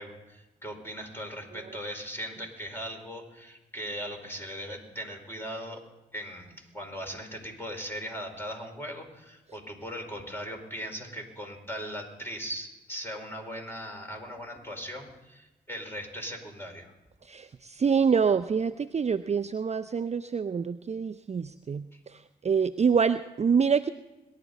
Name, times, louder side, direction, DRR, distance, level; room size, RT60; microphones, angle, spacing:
voice 1, 0.0-5.8 6.1-16.9 21.9-22.0, equal, 10° left, 2 dB, 4.7 m, -39 dB
voice 2, 17.2-23.9, right 6 dB, 35° right, 10 dB, 0.5 m, -26 dB
22.5 x 11.5 x 4.1 m, 1.0 s
supercardioid pair, 40°, 19 cm